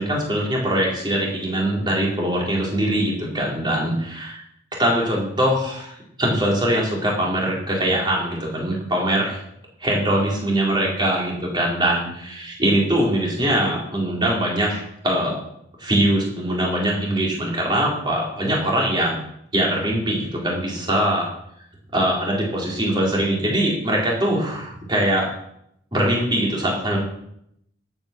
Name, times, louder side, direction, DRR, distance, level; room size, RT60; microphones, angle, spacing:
voice 1, 0.0-4.4 4.8-9.4 9.8-15.4 15.8-19.2 19.5-21.3 21.9-25.3 25.9-27.0, right 1 dB, 25° right, -3 dB, 4.3 m, -22 dB
13.5 x 8.6 x 6.2 m, 0.74 s
head